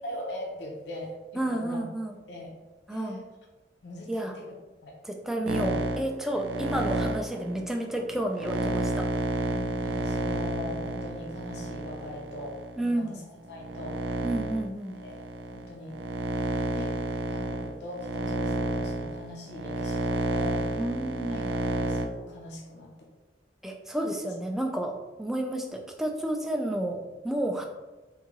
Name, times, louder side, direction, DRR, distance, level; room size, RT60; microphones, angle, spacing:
voice 1, 0.0-1.8 2.3-2.5 2.9-3.3 3.8-4.5 4.8-5.0 5.4-5.8 9.5-14.0 15.0-15.2 15.5-16.0 16.7-17.0 17.3-20.6 21.3-23.1, left 1 dB, 65° left, 0 dB, 0.5 m, -41 dB
voice 2, 1.4-2.1 2.9-3.2 4.1-4.3 5.0-9.1 12.8-13.2 14.2-15.0 20.8-21.5 23.6-27.7, right 1 dB, ahead, 2 dB, 0.3 m, -31 dB
sound 1, 5.5-12.8 13.4-22.1, right 2 dB, 75° right, 0.4 m, -30 dB
3.7 x 2.6 x 3.0 m, 1.2 s
head